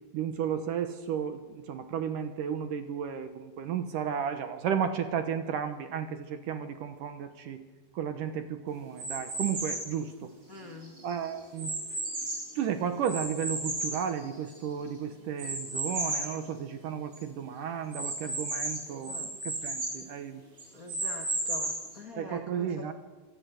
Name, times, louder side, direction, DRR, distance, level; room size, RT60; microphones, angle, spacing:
voice 1, 0.1-7.6 7.9-10.3 11.0-11.7 12.6-20.4 22.2-22.9, right 8 dB, 70° right, 9 dB, 2.2 m, -33 dB
sound 1, 9.0-9.9 10.6-12.6 13.0-14.7 15.4-16.3 16.8-16.9 17.1-17.2 17.9-20.0 20.6-21.9, right 2 dB, 30° right, 7.9 m, -34 dB
voice 2, 10.5-11.0 19.0-19.3 20.7-22.9, left 2 dB, 45° left, 2 dB, 1.1 m, -45 dB
25.5 x 17.5 x 8.0 m, 1.3 s
omnidirectional pair, 4.8 m